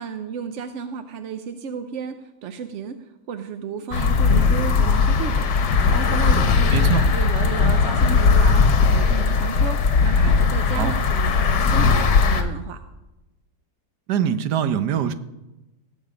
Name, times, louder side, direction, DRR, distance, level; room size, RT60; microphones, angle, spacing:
voice 1, 0.0-12.8, right 6 dB, 60° right, 8 dB, 0.8 m, -33 dB
sound 1, 3.9-12.4, left 5 dB, 75° left, 1.6 m, -18 dB
voice 2, 6.7-7.0 10.8-10.9 14.1-15.1, right 8 dB, 80° right, 11 dB, 1.3 m, -23 dB
18.0 x 7.3 x 5.0 m, 1.0 s
omnidirectional pair, 1.8 m